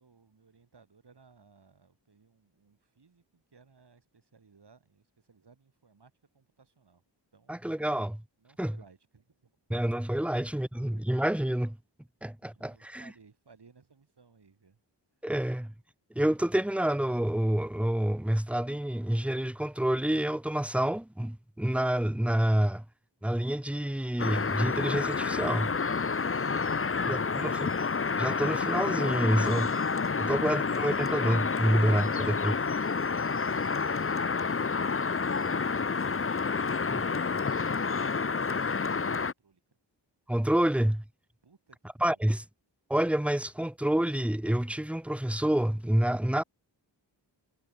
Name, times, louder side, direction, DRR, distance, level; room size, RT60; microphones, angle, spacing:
voice 1, 0.0-7.0 7.3-7.7 8.4-9.6 12.4-14.8 41.4-42.4, right 5 dB, 60° right, 6.9 m, -61 dB
voice 2, 7.5-8.2 8.6-8.7 9.7-11.8 12.2-13.0 15.2-15.7 16.1-22.8 23.2-25.7 27.1-27.7 28.2-29.7 30.2-32.6 40.3-41.0 42.0-42.4 42.9-46.4, right 1 dB, 5° right, 0.9 m, -28 dB
sound 1, 24.2-39.3, left 5 dB, 30° left, 0.9 m, -29 dB
cardioid pair, 60°, 44 cm